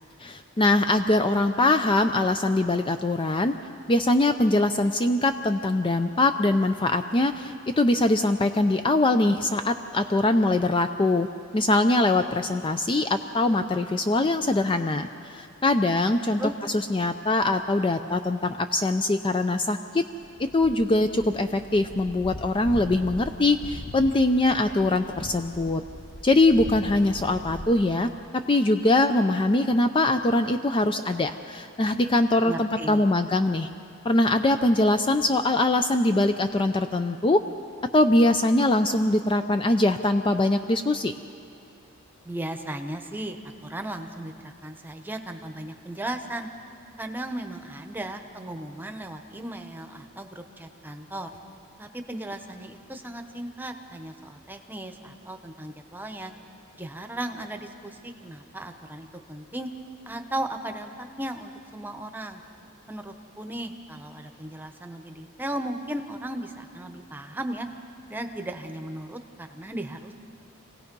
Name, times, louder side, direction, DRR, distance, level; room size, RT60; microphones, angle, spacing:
voice 1, 0.2-3.5 3.9-11.3 11.5-16.4 16.7-20.0 20.4-25.8 26.2-33.7 34.0-37.4 37.9-41.1, left 2 dB, 25° left, 8 dB, 0.5 m, -22 dB
sound 1, 20.1-27.6, left 1 dB, 50° left, 1.4 m, -40 dB
voice 2, 32.4-33.0 42.2-43.4 43.6-46.5 47.0-51.3 51.8-56.3 56.8-59.7 60.1-62.4 62.9-67.7 68.1-70.1, right 1 dB, 10° right, 5 dB, 1.0 m, -36 dB
27.5 x 17.5 x 5.3 m, 2.7 s
head